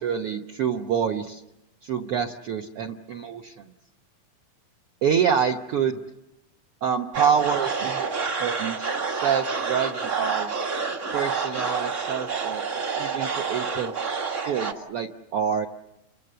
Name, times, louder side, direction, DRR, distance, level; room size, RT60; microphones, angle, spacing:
voice 1, 0.0-1.4 1.8-3.7 5.0-6.0 6.8-8.1 8.4-10.6 11.1-13.9 14.4-15.7, right 7 dB, 65° right, 2 dB, 1.4 m, -27 dB
sound 1, 7.1-14.7, right 5 dB, 40° right, 1.1 m, -28 dB
29.0 x 25.0 x 6.8 m, 0.91 s
omnidirectional pair, 3.8 m